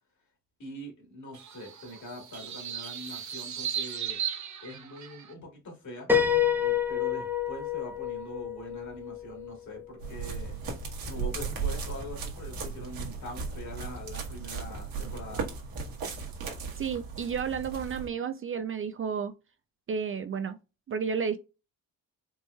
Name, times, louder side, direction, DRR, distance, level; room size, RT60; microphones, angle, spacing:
voice 1, 0.6-4.2 4.6-6.1 6.6-10.6 11.1-15.6, left 1 dB, 55° left, 2.3 m, -43 dB
sound 1, 1.3-5.3, right 9 dB, 55° right, 0.8 m, -36 dB
Piano, 6.1-9.8, left 8 dB, 5° right, 0.8 m, -28 dB
sound 2, 10.0-18.1, right 5 dB, 75° right, 1.2 m, -36 dB
voice 2, 16.8-19.3 19.9-20.6 20.9-21.4, right 6 dB, 40° right, 0.4 m, -31 dB
4.4 x 2.9 x 2.2 m
cardioid pair, 75°, 35 cm